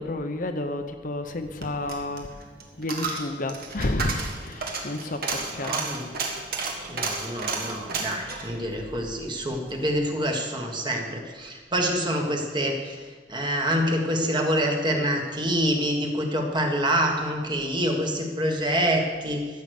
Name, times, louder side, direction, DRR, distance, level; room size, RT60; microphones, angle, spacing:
voice 1, 0.0-2.3 2.8-5.2 5.5-5.7, left 2 dB, 45° left, 6 dB, 0.8 m, -30 dB
Coin (dropping), 1.4-9.8 10.2-10.3, right 4 dB, 55° right, 1.8 m, -33 dB
voice 2, 5.5-6.1 6.9-19.5, equal, 25° right, 2 dB, 1.5 m, -26 dB
14.0 x 7.9 x 6.5 m, 1.5 s
head